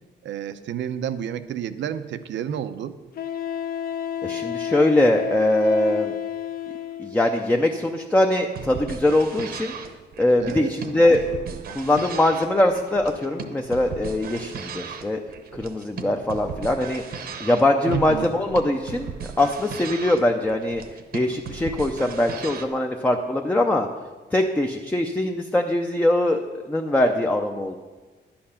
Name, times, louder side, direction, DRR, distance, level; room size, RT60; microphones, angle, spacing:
voice 1, 0.2-2.9 10.4-10.7 17.9-18.3, right 9 dB, 90° right, 11 dB, 0.7 m, -30 dB
Wind instrument woodwind instrument, 1.9-2.0 3.2-7.2, left 9 dB, 55° left, 0.6 m, -30 dB
voice 2, 4.2-6.1 7.0-9.7 10.2-11.2 11.7-15.2 15.5-19.1 19.4-20.8 21.1-23.9 24.3-27.8, left 1 dB, 10° left, 3 dB, 0.5 m, -22 dB
sound 1, 8.5-22.7, right 6 dB, 55° right, 0.9 m, -37 dB
11.0 x 8.7 x 5.7 m, 1.3 s
wide cardioid pair, 175°, 18 cm